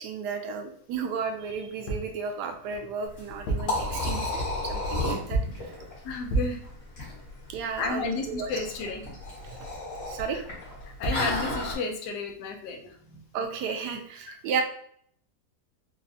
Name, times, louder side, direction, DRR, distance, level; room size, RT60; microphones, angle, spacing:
voice 1, 0.0-5.7 7.5-8.5 9.4-9.6 10.1-10.4 13.3-14.6, right 5 dB, 85° right, 5 dB, 1.2 m, -33 dB
sound 1, 1.9-2.2 3.3-3.8 5.3-5.7 6.3-6.7 10.7-10.8 11.0-11.4, right 2 dB, 70° left, 1.2 m, -29 dB
Liquid, 3.1-11.7, left 2 dB, 50° left, 1.9 m, -33 dB
voice 2, 6.0-6.6 7.8-9.0 10.3-10.4 10.8-13.2 14.3-14.4, left 4 dB, 90° left, 4 dB, 1.2 m, -32 dB
4.2 x 2.3 x 2.6 m, 0.63 s
omnidirectional pair, 1.7 m